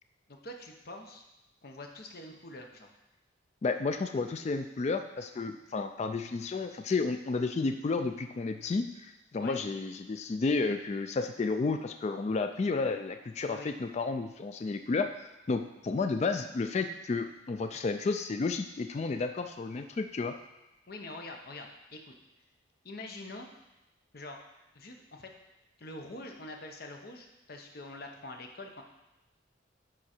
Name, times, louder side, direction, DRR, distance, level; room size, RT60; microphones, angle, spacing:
voice 1, 0.3-1.2 1.6-2.9 9.4-9.6 13.5-13.7 20.9-22.1 22.8-23.5 24.1-24.4 24.7-25.3 25.8-28.8, left 2 dB, 55° left, 3 dB, 0.9 m, -45 dB
voice 2, 3.6-20.3, left 3 dB, 35° left, 8 dB, 0.3 m, -32 dB
9.6 x 3.9 x 4.4 m, 0.98 s
head